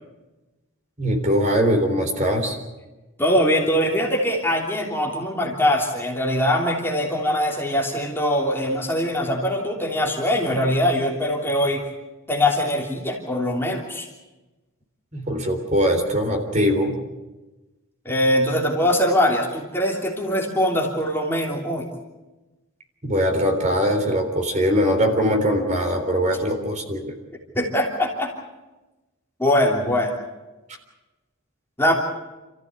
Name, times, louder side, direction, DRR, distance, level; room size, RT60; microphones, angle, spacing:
voice 1, 1.0-2.6 15.1-17.0 23.0-27.1, equal, 35° right, 4 dB, 3.7 m, -21 dB
voice 2, 3.2-11.8 12.3-14.1 18.0-21.9 27.5-28.3 29.4-30.1 31.8-31.9, left 1 dB, 10° left, -1 dB, 3.2 m, -22 dB
29.0 x 14.5 x 8.5 m, 1.1 s
head